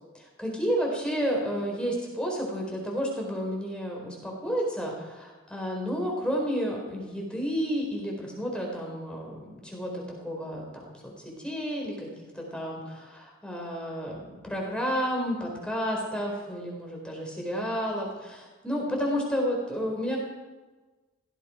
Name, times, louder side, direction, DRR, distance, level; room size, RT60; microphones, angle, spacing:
voice 1, 0.1-12.1 12.3-20.2, equal, 5° left, -1 dB, 4.1 m, -31 dB
17.0 x 15.5 x 5.1 m, 1.2 s
head